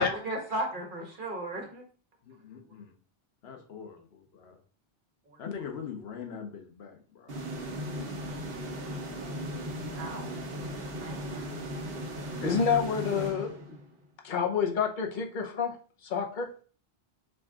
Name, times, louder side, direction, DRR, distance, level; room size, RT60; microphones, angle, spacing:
voice 1, 0.0-1.8 9.9-10.3 11.0-11.5, right 1 dB, 55° right, 1 dB, 1.3 m, -35 dB
voice 2, 2.3-2.9 3.4-4.6 5.4-7.4, left 7 dB, 90° left, 4 dB, 1.0 m, -42 dB
sound 1, 7.3-14.0, equal, 70° right, 1.1 m, -37 dB
voice 3, 12.4-13.8 14.2-15.8 16.0-16.5, left 6 dB, 55° left, 3 dB, 0.9 m, -28 dB
5.1 x 2.4 x 3.6 m, 0.41 s
omnidirectional pair, 1.0 m